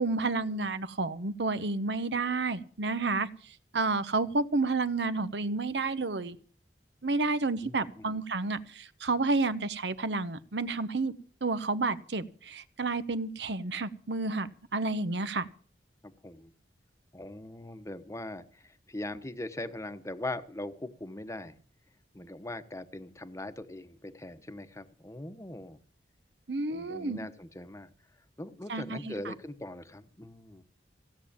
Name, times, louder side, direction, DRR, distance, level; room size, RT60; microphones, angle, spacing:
voice 1, 0.0-3.3 3.7-6.4 7.0-15.5 26.5-27.2 28.7-29.3, right 3 dB, 70° right, 14 dB, 1.0 m, -30 dB
voice 2, 7.6-8.2 16.0-16.5 17.1-21.5 22.1-25.8 26.7-27.9 28.4-30.6, left 1 dB, 15° left, 10 dB, 1.0 m, -41 dB
16.5 x 7.7 x 8.7 m, 0.43 s
head